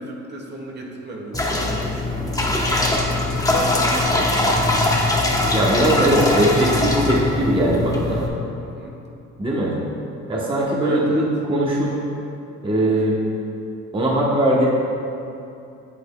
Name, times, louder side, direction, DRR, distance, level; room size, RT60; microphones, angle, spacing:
voice 1, 0.0-2.6 3.2-4.8 6.0-6.6 8.6-9.0 10.8-11.3, right 2 dB, 35° right, -1 dB, 1.2 m, -34 dB
sound 1, 1.3-8.3, left 2 dB, 10° left, 0.9 m, -21 dB
voice 2, 5.5-8.3 9.4-9.7 10.3-11.9 12.6-13.2 13.9-14.7, right 1 dB, 15° right, -4 dB, 1.0 m, -20 dB
8.4 x 7.7 x 2.3 m, 2.7 s
cardioid pair, 90°, 30 cm